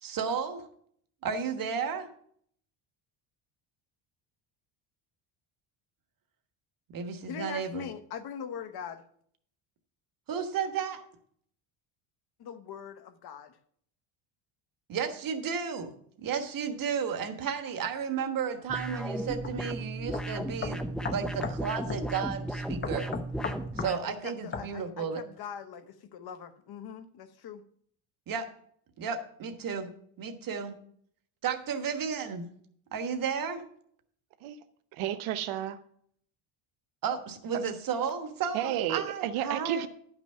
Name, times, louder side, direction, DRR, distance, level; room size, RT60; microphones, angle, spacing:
voice 1, 0.0-0.6 1.2-2.1 6.9-7.9 10.3-11.0 14.9-20.8 21.1-23.1 23.8-25.2 28.3-28.5 29.0-29.9 30.2-30.7 31.4-32.5 32.9-33.6 37.0-39.9, right 6 dB, 40° right, 1.3 m, -33 dB
voice 2, 7.3-9.0 12.4-13.6 24.0-27.6, left 8 dB, 50° left, 1.0 m, -42 dB
sound 1, 18.7-24.0, right 1 dB, ahead, 0.5 m, -35 dB
sound 2, 19.4-19.6 20.1-20.2 20.6-21.6 21.9-22.1 22.8-24.0 24.5-24.7, left 5 dB, 25° left, 0.8 m, -35 dB
voice 3, 35.0-35.8 38.5-39.9, right 11 dB, 75° right, 0.9 m, -31 dB
11.0 x 6.1 x 5.5 m
cardioid pair, 135°, 50 cm